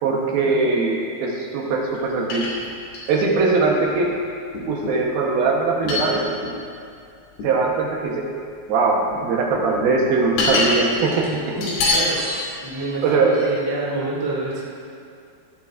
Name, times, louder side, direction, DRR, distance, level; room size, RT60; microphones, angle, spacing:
voice 1, 0.0-2.5 3.1-4.1 4.7-6.3 7.4-8.3 8.7-11.6 13.0-13.4, right 3 dB, 75° right, -1 dB, 2.8 m, -21 dB
sound 1, 2.0-2.1 2.3-3.4 4.0-4.1 4.5-5.1 5.9-6.6 7.4-7.6 8.7-9.2 9.5-10.8 11.1-11.2 11.6-12.1 12.7-12.8, left 2 dB, 85° left, 4.3 m, -25 dB
sound 2, 10.9-13.7, equal, 55° right, 3.6 m, -39 dB
voice 2, 11.5-12.4 12.6-14.6, right 2 dB, 10° right, -6 dB, 1.5 m, -27 dB
17.0 x 12.5 x 2.5 m, 2.4 s
omnidirectional pair, 4.6 m